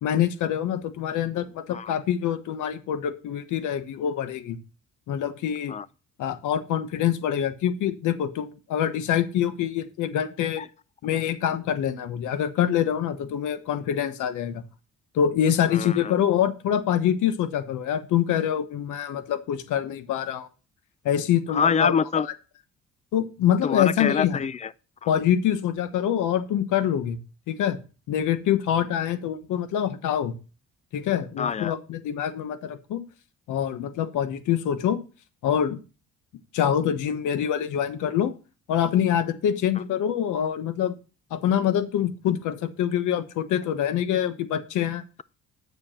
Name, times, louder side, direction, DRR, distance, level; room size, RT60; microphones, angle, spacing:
voice 1, 0.0-4.6 5.1-5.8 6.2-10.6 11.0-14.6 15.1-20.5 21.0-21.9 23.1-24.4 25.1-27.2 27.5-27.8 28.1-30.4 30.9-33.0 33.5-35.0 35.4-35.8 36.5-38.3 38.7-41.0 41.3-45.0, left 9 dB, 90° left, 1.2 m, -25 dB
voice 2, 15.7-16.1 21.5-22.3 23.6-24.7 25.0-25.1 31.4-31.7, left 6 dB, 25° left, 0.5 m, -25 dB
9.4 x 6.9 x 4.3 m
cardioid pair, 90°, 30 cm